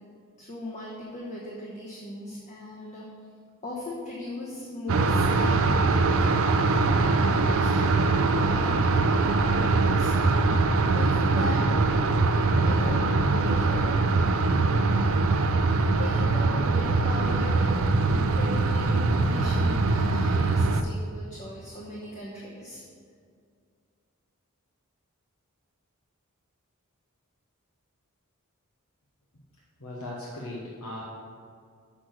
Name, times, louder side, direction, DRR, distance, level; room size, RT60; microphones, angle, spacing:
voice 1, 0.4-3.1 3.6-5.9 6.2-10.1 10.9-11.6 12.0-14.0 16.0-17.8 18.1-22.8, left 1 dB, 35° left, -4 dB, 1.0 m, -39 dB
sound 1, 4.9-20.8, right 3 dB, 65° right, 0.5 m, -23 dB
voice 2, 29.8-31.0, left 1 dB, 80° left, -4 dB, 1.1 m, -38 dB
6.1 x 6.1 x 6.4 m, 2.2 s
head